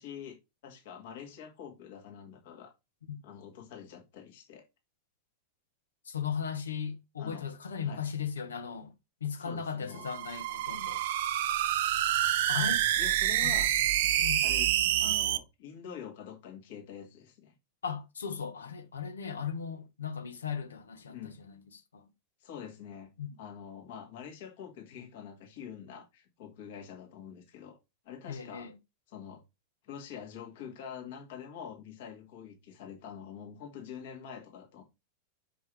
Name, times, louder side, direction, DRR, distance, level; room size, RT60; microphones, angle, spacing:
voice 1, 0.0-2.7 3.2-4.7 7.2-7.4 7.8-8.0 9.4-10.0 12.5-12.7 13.0-13.7 14.4-17.5 21.1-21.4 22.4-23.1 23.4-27.8 28.1-28.7 29.1-29.4 29.8-34.8, left 8 dB, 55° left, 2.0 m, -45 dB
voice 2, 6.1-8.9 9.2-11.0 12.5-12.8 13.4-13.5 14.2-14.4 17.8-22.0 23.2-23.3 28.3-28.7, left 7 dB, 70° left, 1.1 m, -37 dB
sound 1, 10.0-15.4, right 12 dB, 55° right, 0.6 m, -27 dB
6.1 x 5.3 x 3.4 m
figure-of-eight pair, 90°, 0 cm